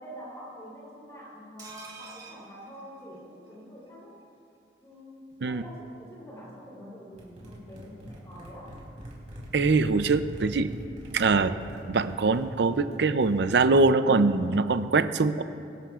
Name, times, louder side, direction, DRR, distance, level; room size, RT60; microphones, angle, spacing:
voice 1, 0.0-4.2 4.8-8.8, equal, 15° left, -5 dB, 3.6 m, -46 dB
sound 1, 1.6-3.5 3.9-4.0 4.2-4.3, right 5 dB, 20° right, 2.0 m, -48 dB
sound 2, 7.1-13.6, equal, 45° right, 3.2 m, -43 dB
voice 2, 9.5-10.7 11.1-11.5 11.9-15.4, right 3 dB, 70° right, 11 dB, 0.5 m, -23 dB
24.5 x 11.5 x 2.4 m, 2.6 s
head